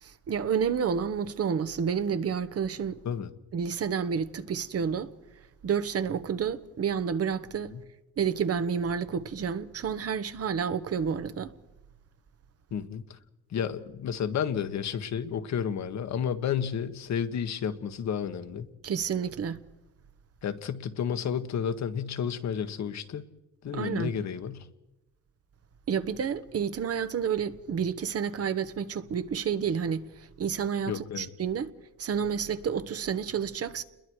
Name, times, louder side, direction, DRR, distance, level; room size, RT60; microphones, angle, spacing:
voice 1, 0.0-3.0 3.5-5.1 5.6-7.7 8.2-11.5 18.8-19.6 23.7-24.1 25.9-31.7 32.0-33.8, right 7 dB, 50° right, 1.2 m, -30 dB
voice 2, 12.7-13.2 13.5-18.7 20.4-23.2 23.6-24.7 30.9-31.3, left 8 dB, 65° left, 1.6 m, -31 dB
29.0 x 21.5 x 4.8 m
cardioid pair, 90°, 30 cm